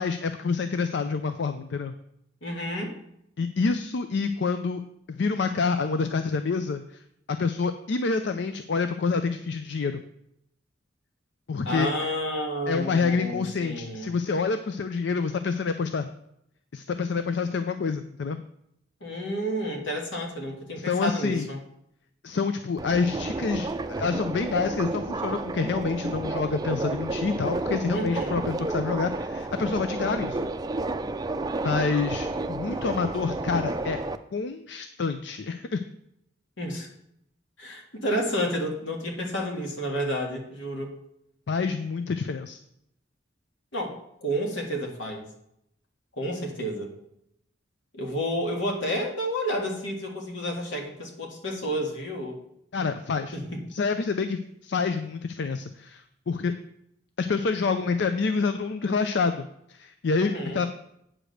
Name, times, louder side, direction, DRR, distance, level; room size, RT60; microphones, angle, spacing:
voice 1, 0.0-1.9 3.4-4.8 5.1-7.0 7.3-10.0 11.5-11.9 12.7-16.1 16.7-18.4 20.8-21.5 22.2-30.5 31.6-34.0 34.3-35.8 41.5-42.6 52.7-53.4 53.7-56.5 57.2-60.7, left 4 dB, 65° left, 9 dB, 0.5 m, -27 dB
voice 2, 2.4-3.0 11.6-14.1 19.0-21.6 27.9-28.4 36.6-36.9 37.6-40.9 43.7-44.0 44.2-45.3 46.2-46.9 47.9-52.4 53.3-53.6 60.2-60.6, equal, 85° left, 1 dB, 2.0 m, -30 dB
Subway metro underground, 22.8-34.2, right 2 dB, 20° right, 0.4 m, -31 dB
8.8 x 5.0 x 6.4 m, 0.76 s
head